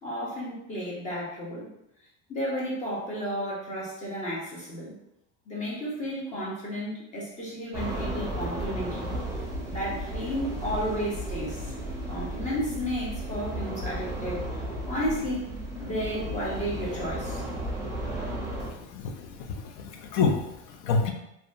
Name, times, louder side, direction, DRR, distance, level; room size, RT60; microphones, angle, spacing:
voice 1, 0.0-1.7 2.3-5.0 5.5-9.1 9.7-11.7 12.1-15.5 15.8-17.4, equal, 20° left, -5 dB, 0.8 m, -33 dB
sound 1, 7.7-18.7, right 1 dB, 10° right, 0.4 m, -34 dB
voice 2, 18.7-21.1, left 4 dB, 65° left, 4 dB, 0.6 m, -28 dB
2.7 x 2.2 x 2.5 m, 0.82 s
supercardioid pair, 140°, 37 cm